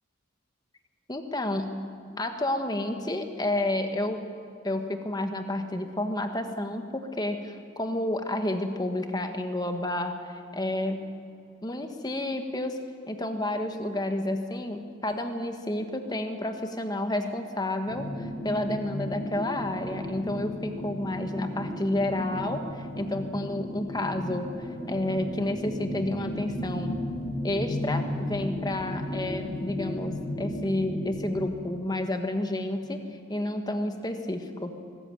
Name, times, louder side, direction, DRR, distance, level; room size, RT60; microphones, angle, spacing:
voice 1, 1.1-1.7 2.2-4.2 4.6-11.1 11.6-12.8 13.1-26.9 27.4-33.0 33.3-34.7, left 1 dB, 20° left, 6 dB, 1.5 m, -30 dB
sound 1, 17.9-31.4, left 1 dB, ahead, 6.7 m, -34 dB
23.5 x 14.0 x 9.2 m, 2.4 s
head